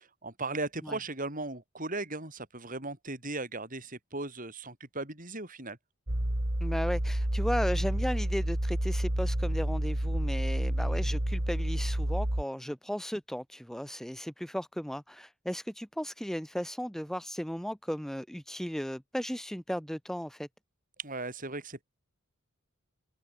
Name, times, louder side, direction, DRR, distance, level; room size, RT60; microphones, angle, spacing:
voice 1, 0.0-5.8 21.0-21.8, right 2 dB, 40° right, 6.8 m, -37 dB
sound 1, 6.1-12.4, right 1 dB, 55° right, 3.1 m, -29 dB
voice 2, 6.6-20.5, equal, ahead, 1.4 m, -35 dB
open air
head